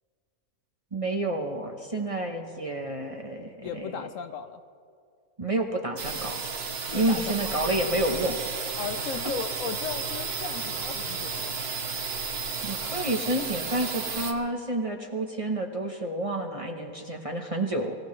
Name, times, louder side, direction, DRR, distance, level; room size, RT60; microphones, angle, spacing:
voice 1, 0.9-4.1 5.4-6.5 6.9-8.8 12.6-18.0, right 1 dB, 25° right, 2 dB, 0.9 m, -29 dB
voice 2, 3.6-4.6 6.9-7.5 8.8-11.7, left 7 dB, 65° left, 9 dB, 0.9 m, -36 dB
sound 1, 6.0-14.3, right 5 dB, 45° right, 1.1 m, -33 dB
24.5 x 16.5 x 3.2 m, 2.3 s
omnidirectional pair, 1.6 m